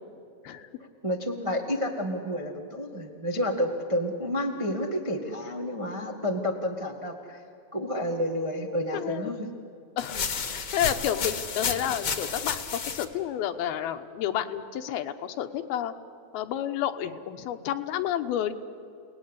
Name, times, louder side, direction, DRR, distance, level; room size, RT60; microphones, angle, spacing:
voice 1, 1.0-7.4 7.7-9.5, equal, 35° right, 1 dB, 0.5 m, -30 dB
voice 2, 8.9-9.3 10.0-15.9 16.3-18.5, left 10 dB, 85° left, 8 dB, 3.0 m, -30 dB
sound 1, 10.0-13.0, left 5 dB, 45° left, 1.4 m, -31 dB
29.5 x 19.0 x 10.0 m, 2.6 s
omnidirectional pair, 4.3 m